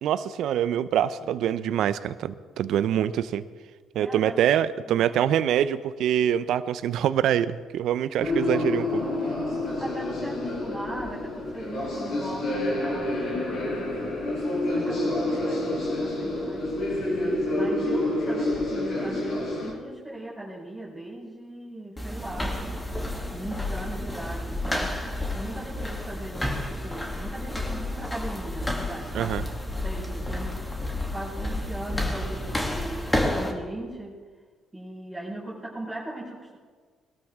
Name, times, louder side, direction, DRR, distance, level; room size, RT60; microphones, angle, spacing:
voice 1, 0.0-3.4 3.9-9.0 29.1-29.4, right 10 dB, 70° right, 15 dB, 0.6 m, -25 dB
voice 2, 3.9-4.4 4.9-5.2 9.8-16.9 17.5-22.8 23.3-25.0 25.3-29.4 29.7-30.7 31.1-34.2 34.7-36.6, right 1 dB, 10° right, -6 dB, 5.0 m, -39 dB
sound 1, 8.2-19.7, left 1 dB, 65° left, 5.4 m, -28 dB
sound 2, 22.0-33.5, left 1 dB, 15° left, 2.6 m, -30 dB
20.5 x 13.0 x 3.6 m, 1.5 s
supercardioid pair, 60°, 0 cm